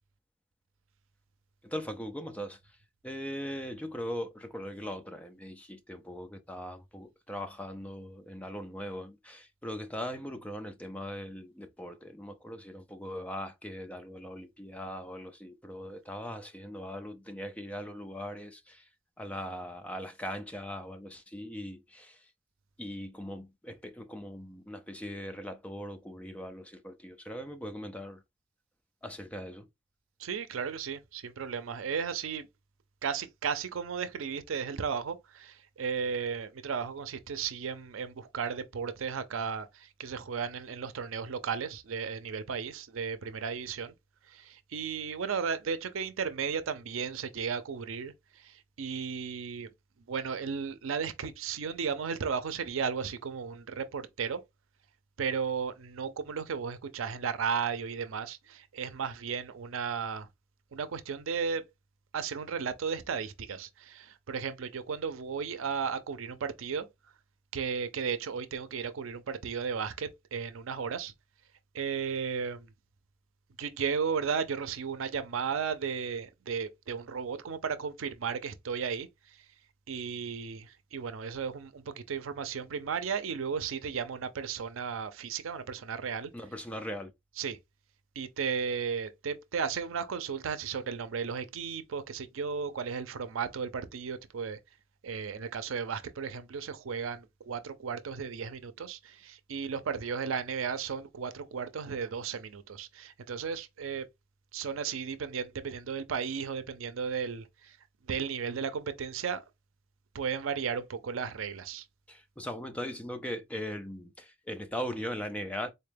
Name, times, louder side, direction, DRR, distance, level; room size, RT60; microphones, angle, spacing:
voice 1, 1.6-2.6 3.0-18.8 19.2-22.2 22.8-28.2 29.0-29.7 86.3-87.1 112.1-115.7, equal, 5° left, 0.4 m, -40 dB
voice 2, 30.2-32.5 33.0-43.9 44.3-49.7 50.1-54.4 55.2-60.3 60.7-61.6 62.1-66.9 67.5-71.1 71.7-72.7 73.6-79.1 79.9-86.3 87.4-87.6 88.2-94.6 95.0-104.0 104.5-107.8 108.1-109.4 110.1-111.8, right 6 dB, 90° right, 0.5 m, -34 dB
4.0 x 2.2 x 3.2 m
head